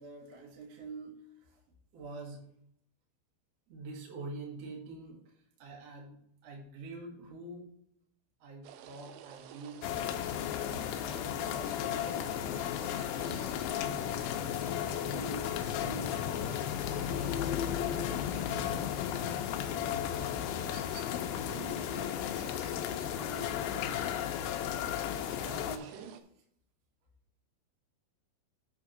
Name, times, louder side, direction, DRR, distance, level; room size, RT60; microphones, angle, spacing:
voice 1, 0.0-1.6 1.9-2.4 3.7-7.7 8.4-12.2 12.8-14.6 15.0-16.5 17.0-24.2 25.3-26.4, right 3 dB, 50° right, -2 dB, 2.2 m, -47 dB
sound 1, 8.6-26.2, right 11 dB, 80° right, 2.8 m, -52 dB
sound 2, 9.8-25.8, left 10 dB, 80° left, 2.6 m, -34 dB
8.3 x 3.6 x 6.4 m, 0.70 s
omnidirectional pair, 5.3 m